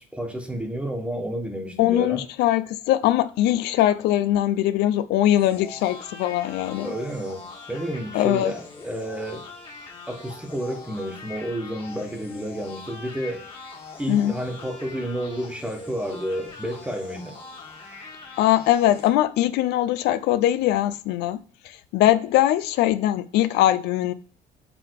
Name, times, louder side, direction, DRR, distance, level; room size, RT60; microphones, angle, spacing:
voice 1, 0.0-2.2 6.8-9.4 10.1-13.5 14.0-17.4, equal, 5° right, 1.4 m, -31 dB
voice 2, 1.8-6.9 8.1-8.5 14.1-14.3 18.4-21.4 21.6-24.1, left 13 dB, 85° left, 0.5 m, -21 dB
sound 1, 5.4-19.1, left 3 dB, 30° left, 1.8 m, -42 dB
6.9 x 3.6 x 4.6 m
cardioid pair, 110°, 17 cm